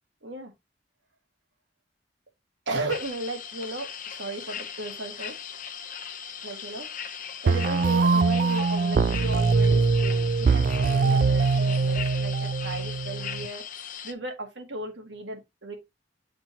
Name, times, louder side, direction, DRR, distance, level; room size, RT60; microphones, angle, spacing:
voice 1, 0.2-0.5 2.7-3.9 4.2-5.3 6.4-6.9 7.4-15.7, right 2 dB, 75° right, 1.8 m, -35 dB
sound 1, 2.9-14.1, left 8 dB, 45° left, 0.6 m, -38 dB
sound 2, 7.5-13.5, right 4 dB, 50° right, 0.3 m, -23 dB
8.2 x 4.3 x 2.8 m
head